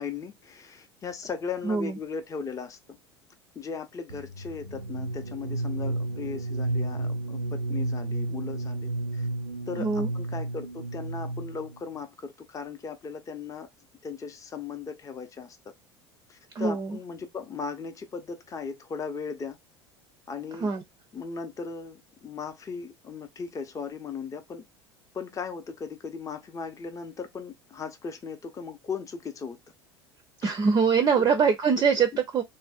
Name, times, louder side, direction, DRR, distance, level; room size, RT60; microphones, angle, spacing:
voice 1, 0.0-3.0 3.6-9.3 9.7-13.7 14.0-15.7 16.3-19.6 20.3-20.7 21.1-24.7 25.1-29.6 30.4-30.5 31.2-31.3, left 5 dB, 25° left, 0.6 m, -37 dB
voice 2, 1.6-2.0 9.8-10.1 16.5-17.0 20.6-20.8 30.4-32.4, right 5 dB, 25° right, 0.5 m, -23 dB
sound 1, 4.1-11.8, right 2 dB, 85° right, 0.4 m, -32 dB
2.5 x 2.0 x 2.3 m
figure-of-eight pair, 75°, 14 cm